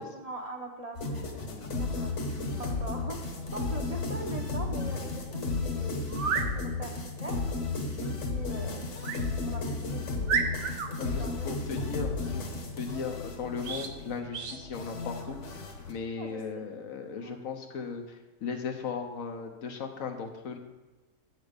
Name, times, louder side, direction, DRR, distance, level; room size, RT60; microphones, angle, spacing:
voice 1, 0.0-1.3 1.6-6.0 6.4-7.5 7.9-9.0 9.4-10.5 10.9-11.5 11.8-11.9 12.8-13.0 16.2-16.6 17.2-17.5, right 1 dB, 35° right, 2 dB, 0.8 m, -42 dB
sound 1, 1.0-15.9, left 3 dB, 65° left, 1.4 m, -34 dB
voice 2, 1.4-1.8 6.5-6.7 11.0-20.6, left 5 dB, 85° left, 4 dB, 1.4 m, -37 dB
sound 2, 6.1-6.5 9.0-9.2 9.8-9.9 10.3-10.9 13.6-13.9 14.3-14.6, right 6 dB, 65° right, 1.0 m, -30 dB
8.0 x 6.4 x 5.1 m, 1.2 s
omnidirectional pair, 1.4 m